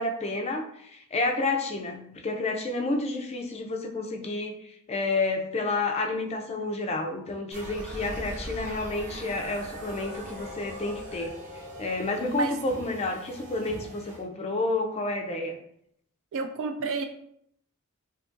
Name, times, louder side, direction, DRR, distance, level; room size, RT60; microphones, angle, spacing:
voice 1, 0.0-11.3 11.8-15.6, left 2 dB, 30° left, 3 dB, 0.4 m, -30 dB
sound 1, 7.5-14.2, equal, 35° right, 0.8 m, -41 dB
voice 2, 16.3-17.1, right 4 dB, 60° right, 7 dB, 0.3 m, -31 dB
2.8 x 2.4 x 3.7 m, 0.72 s
head